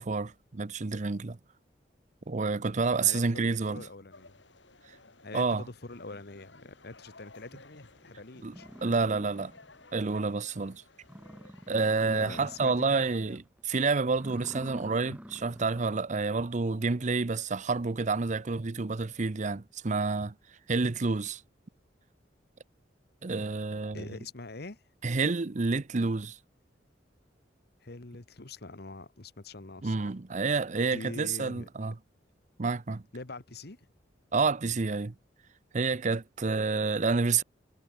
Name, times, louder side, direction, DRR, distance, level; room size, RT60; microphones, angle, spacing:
voice 1, 0.0-1.4 2.3-3.8 5.3-5.6 8.4-8.5 8.8-9.5 9.9-10.8 11.7-20.3 20.7-21.4 23.2-24.0 25.0-26.4 29.8-32.0 32.6-33.0 34.3-35.1 35.7-37.4, right 4 dB, 40° right, 0.7 m, -29 dB
voice 2, 3.0-4.4 5.2-8.7 12.1-13.0 23.9-24.8 27.8-30.1 30.8-31.9 33.1-33.8, left 2 dB, 60° left, 1.5 m, -44 dB
sound 1, 4.1-13.4, left 3 dB, 85° left, 5.8 m, -57 dB
sound 2, 8.0-8.1 8.5-9.9 10.2-10.3 10.7-10.8 11.0-13.0 13.3-13.6 14.1-16.1, equal, 10° right, 1.9 m, -47 dB
head